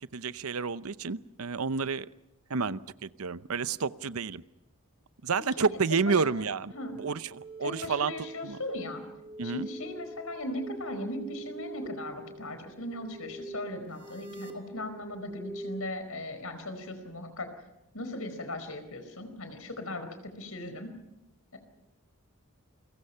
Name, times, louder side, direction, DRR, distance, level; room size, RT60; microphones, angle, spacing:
voice 1, 0.1-2.1 2.5-4.4 5.2-8.6 9.4-9.7, right 5 dB, 75° right, 15 dB, 0.7 m, -30 dB
voice 2, 6.1-6.4 6.7-6.9 7.6-9.0 9.4-17.5 17.9-20.9 21.5-21.6, left 1 dB, 75° left, 9 dB, 4.5 m, -38 dB
sound 1, 6.7-15.9, right 3 dB, 25° right, 2.8 m, -44 dB
29.5 x 23.0 x 5.7 m, 0.93 s
head